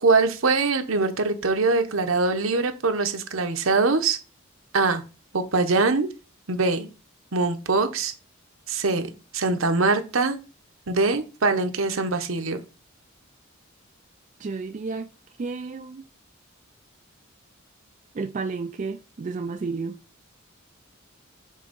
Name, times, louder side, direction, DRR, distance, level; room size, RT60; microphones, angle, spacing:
voice 1, 0.0-4.2 4.7-5.0 5.3-6.1 6.5-6.9 7.3-8.1 8.7-10.4 10.9-12.6, right 3 dB, 70° right, 1.0 m, -23 dB
voice 2, 14.4-15.1 15.4-16.0 18.1-20.0, right 4 dB, 35° right, 0.4 m, -31 dB
7.6 x 3.5 x 5.2 m
head